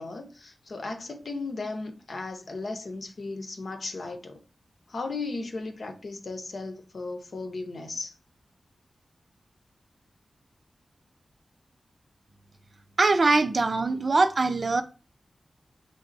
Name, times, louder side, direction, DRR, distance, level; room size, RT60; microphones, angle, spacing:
voice 1, 0.0-4.4 4.9-8.1, left 3 dB, 65° left, 0.8 m, -36 dB
voice 2, 13.0-14.8, right 3 dB, 55° right, 0.5 m, -22 dB
5.2 x 3.5 x 2.6 m
wide cardioid pair, 75°, 0 cm